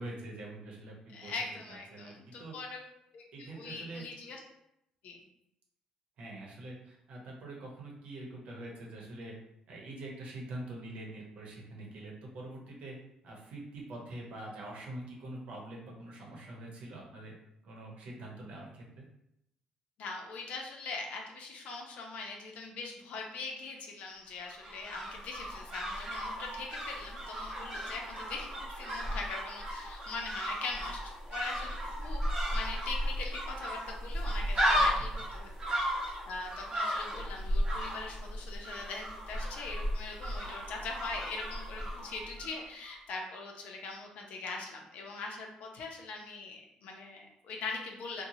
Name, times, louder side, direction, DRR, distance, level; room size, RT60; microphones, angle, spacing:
voice 1, 0.0-1.3 1.7-2.8 3.3-4.0 6.2-9.4 9.7-12.9 13.2-17.3 17.6-19.0 35.4-35.8, right 1 dB, 65° right, -1 dB, 0.8 m, -45 dB
voice 2, 1.1-2.8 3.1-4.4 5.0-5.2 20.0-32.3 32.5-35.5 36.3-48.3, left 3 dB, 75° left, 1 dB, 0.6 m, -42 dB
sound 1, 24.4-42.6 42.8-42.9, equal, 30° right, 0.9 m, -35 dB
2.8 x 2.2 x 2.7 m, 0.80 s
cardioid pair, 110°, 2 cm